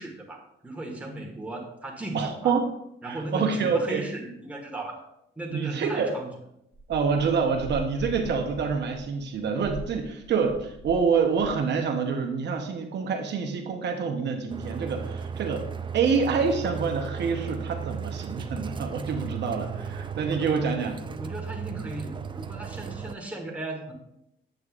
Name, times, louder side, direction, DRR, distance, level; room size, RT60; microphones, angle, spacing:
voice 1, 0.0-2.5 3.0-5.1 5.3-6.3 20.4-23.9, right 2 dB, 5° right, -1 dB, 1.5 m, -36 dB
voice 2, 2.1-2.7 3.1-4.0 5.5-6.1 6.9-15.6 15.9-20.9, right 5 dB, 60° right, 4 dB, 0.8 m, -27 dB
sound 1, 6.7-11.1 11.4-11.7, right 1 dB, 30° left, 2.3 m, -41 dB
sound 2, 14.5-23.1, right 6 dB, 25° right, 0.4 m, -36 dB
7.6 x 6.5 x 2.4 m, 0.80 s
cardioid pair, 90°, 20 cm